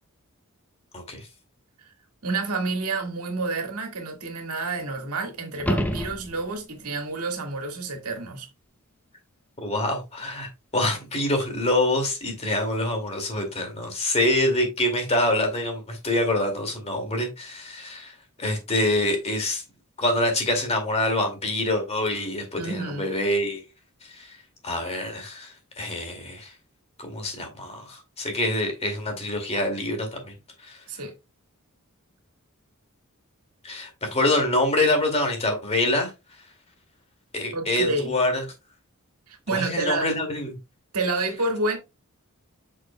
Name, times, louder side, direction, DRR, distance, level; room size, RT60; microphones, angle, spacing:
voice 1, 2.2-8.5 22.6-23.1 30.9-31.1 37.5-38.2 39.3-40.1 40.9-41.8, right 3 dB, 85° right, 1.9 m, -29 dB
sound 1, 5.5-6.8 11.6-11.7, equal, 5° left, 0.7 m, -28 dB
voice 2, 9.6-19.6 20.0-23.6 24.0-24.4 24.6-26.5 27.0-30.3 30.6-30.8 33.6-36.1 37.3-38.4 39.5-40.6, left 1 dB, 30° left, 2.3 m, -26 dB
7.7 x 6.2 x 2.2 m
head